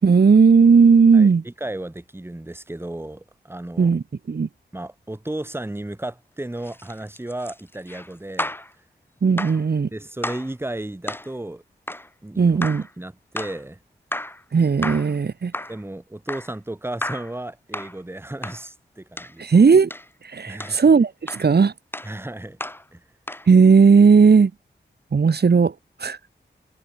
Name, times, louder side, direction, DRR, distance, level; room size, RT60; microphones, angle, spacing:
voice 1, 0.0-1.4 3.8-4.5 9.2-9.9 12.4-12.8 14.5-15.5 19.4-19.9 20.2-21.7 23.5-24.5 25.1-25.7 26.0-26.2, right 5 dB, 60° right, 3.1 m, -15 dB
voice 2, 1.1-3.9 4.7-8.5 9.9-11.6 12.2-12.6 13.0-13.8 15.7-19.4 20.5-20.8 22.0-22.6 22.9-23.0, right 1 dB, 10° right, 2.9 m, -34 dB
sound 1, 6.6-8.7 9.4-9.6 10.2-10.5 11.1-11.3 11.9-12.1 12.6-12.9 13.4-13.6 14.1-14.4 14.8-15.2 15.5-15.8 16.3-16.6 17.0-17.3 17.7-18.0 18.4-18.6 19.2-19.3 19.9-20.1 20.6-20.8 21.3-21.5 21.9-22.1 22.6-22.8 23.3-23.5, left 1 dB, 10° left, 2.4 m, -32 dB
wide cardioid pair, 130°, 19 cm